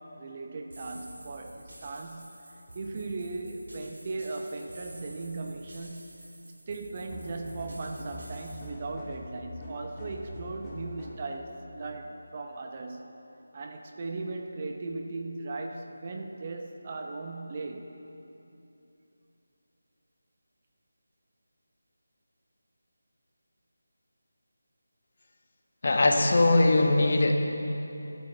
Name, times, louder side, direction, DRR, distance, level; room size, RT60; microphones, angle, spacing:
voice 1, 0.0-2.4 2.7-6.1 6.7-13.1 13.5-17.9, right 3 dB, 35° right, 3 dB, 0.9 m, -38 dB
sound 1, 0.7-8.7, right 1 dB, 70° right, 3.3 m, -49 dB
sound 2, 7.1-11.3, left 1 dB, 10° left, 2.3 m, -43 dB
voice 2, 25.8-27.4, left 2 dB, 50° left, 3 dB, 1.5 m, -21 dB
24.5 x 11.5 x 3.3 m, 3.0 s
figure-of-eight pair, 160°, 0 cm